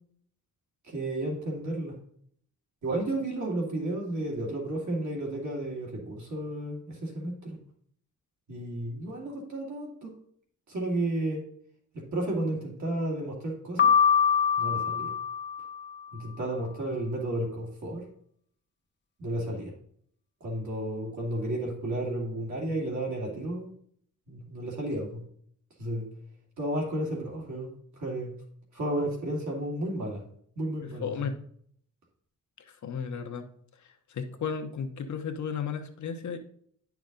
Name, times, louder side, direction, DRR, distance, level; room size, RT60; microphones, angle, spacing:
voice 1, 0.9-2.0 2.8-7.6 8.5-10.2 10.7-11.4 11.9-13.9 14.6-15.1 16.1-18.1 19.2-19.7 20.4-23.7 24.3-25.2 25.8-26.1 26.6-27.7 28.0-28.3 28.7-30.2 30.6-31.1, right 1 dB, 60° right, -2 dB, 2.3 m, -32 dB
Piano, 13.8-15.9, left 7 dB, 35° left, 0.9 m, -24 dB
voice 2, 30.8-31.4 32.7-33.5 33.8-36.4, left 6 dB, 60° left, 7 dB, 1.0 m, -34 dB
9.8 x 6.0 x 3.9 m, 0.63 s
wide cardioid pair, 175°, 32 cm